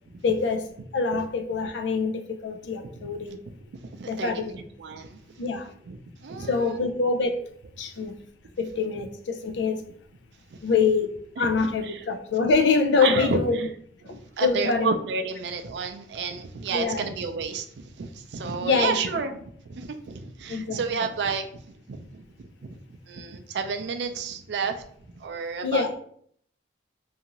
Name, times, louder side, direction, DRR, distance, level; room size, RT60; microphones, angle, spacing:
voice 1, 0.2-0.7 0.9-3.4 4.1-4.6 5.4-5.7 6.5-7.4 7.8-8.2 8.6-9.8 10.6-13.6 14.0-14.9 16.7-17.0 18.6-19.0 20.5-20.8 25.6-25.9, left 4 dB, 80° left, 5 dB, 0.4 m, -25 dB
voice 2, 3.8-5.2 5.9-6.9 8.0-8.1 10.5-10.6 11.4-11.5 11.8-12.0 13.0-13.7 14.0-21.6 21.9-24.8 25.2-25.9, right 5 dB, 70° right, 6 dB, 0.4 m, -31 dB
2.6 x 2.4 x 2.9 m, 0.62 s
head